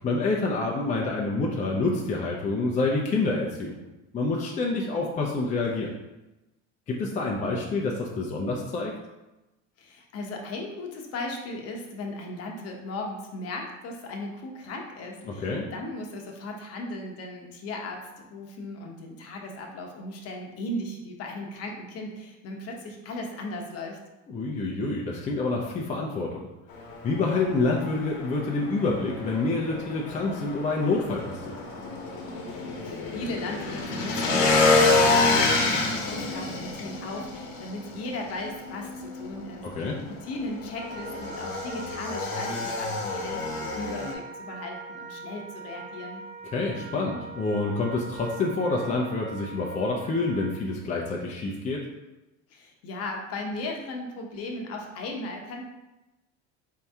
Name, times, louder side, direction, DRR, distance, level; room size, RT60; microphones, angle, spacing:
voice 1, 0.0-3.8 4.1-5.9 6.9-8.9 15.3-15.7 24.3-26.5 27.0-31.6 39.8-40.0 46.5-51.8, left 3 dB, 20° left, -2 dB, 0.5 m, -27 dB
voice 2, 9.8-24.0 32.5-40.0 40.2-46.2 52.5-55.6, left 2 dB, 45° left, 1 dB, 0.8 m, -37 dB
Motorcycle / Engine, 26.7-44.1, left 3 dB, 70° left, 1.0 m, -28 dB
Wind instrument woodwind instrument, 40.7-50.6, right 4 dB, 70° right, 1.1 m, -42 dB
4.5 x 2.8 x 3.4 m, 1.0 s
supercardioid pair, 120°, 34 cm